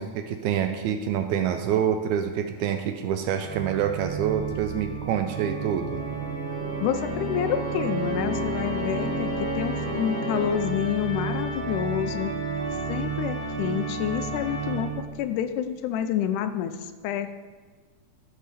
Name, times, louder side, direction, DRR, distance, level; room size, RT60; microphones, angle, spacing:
voice 1, 0.0-6.0, right 9 dB, 80° right, 7 dB, 1.8 m, -26 dB
Organ, 3.3-15.2, right 3 dB, 5° left, 1.9 m, -31 dB
voice 2, 6.8-9.3 9.6-12.3 12.9-17.4, left 9 dB, 80° left, 10 dB, 2.0 m, -28 dB
13.0 x 4.9 x 4.1 m, 1.4 s
omnidirectional pair, 3.7 m